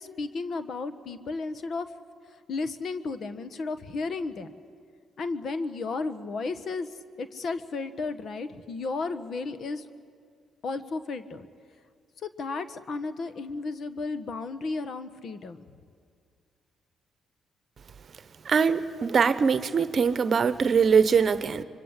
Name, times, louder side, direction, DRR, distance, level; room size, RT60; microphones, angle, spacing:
voice 1, 0.0-1.9 2.5-4.5 5.2-6.9 7.2-9.9 10.6-11.5 12.2-15.6, left 3 dB, 55° left, 11 dB, 1.3 m, -33 dB
voice 2, 18.5-21.6, right 6 dB, 45° right, 13 dB, 1.0 m, -22 dB
24.5 x 24.0 x 8.3 m, 2.2 s
cardioid pair, 90°, 0 cm